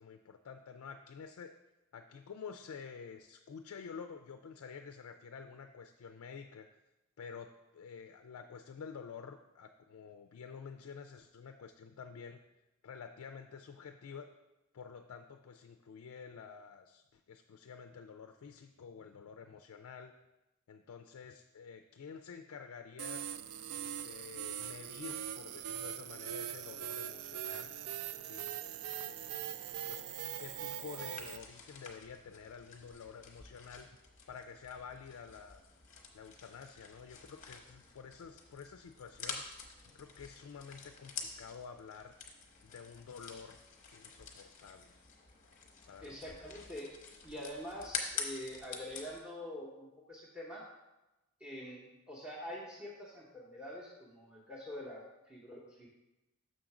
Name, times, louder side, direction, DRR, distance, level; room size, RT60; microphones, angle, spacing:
voice 1, 0.0-1.5 1.9-6.7 7.2-12.4 12.8-14.3 14.7-20.1 20.7-23.2 23.7-27.7 28.2-28.5 29.1-30.1 30.4-34.0 34.3-35.6 36.1-39.4 39.9-42.1 42.6-43.6 43.9-44.9 45.9-46.5, left 6 dB, 75° left, 6 dB, 0.4 m, -49 dB
sound 1, 23.0-31.4, right 10 dB, 80° right, 0.3 m, -41 dB
sound 2, 31.1-49.2, left 5 dB, 35° left, 0.7 m, -47 dB
voice 2, 46.0-46.9 47.2-50.6 51.4-55.9, left 1 dB, 5° right, -6 dB, 0.8 m, -45 dB
6.4 x 3.8 x 5.9 m, 0.99 s
head